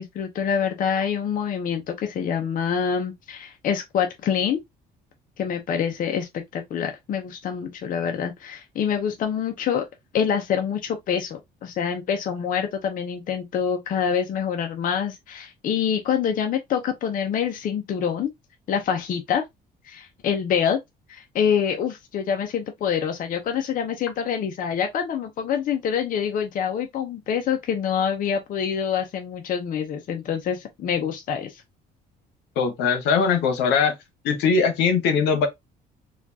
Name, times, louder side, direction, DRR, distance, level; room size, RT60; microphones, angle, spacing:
voice 1, 0.0-4.6 5.4-9.9 10.1-18.3 18.7-19.4 19.8-20.8 21.1-31.6, left 7 dB, 55° left, 0.7 m, -26 dB
voice 2, 32.6-33.9 34.2-35.5, left 5 dB, 85° left, 1.2 m, -20 dB
4.2 x 2.4 x 2.8 m
cardioid pair, 110°, 17 cm